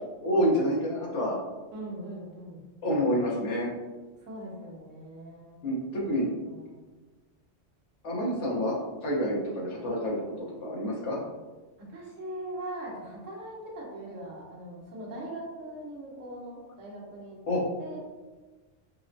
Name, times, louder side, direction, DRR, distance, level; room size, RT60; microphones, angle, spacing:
voice 1, 0.2-1.4 2.8-3.7 5.6-6.3 8.0-8.7 9.0-11.2 17.5-17.6, equal, 70° left, -4 dB, 1.3 m, -28 dB
voice 2, 1.7-2.6 4.2-5.6 6.5-6.8 11.9-18.0, right 1 dB, 85° right, -3 dB, 1.3 m, -41 dB
5.3 x 2.1 x 2.6 m, 1.2 s
omnidirectional pair, 1.3 m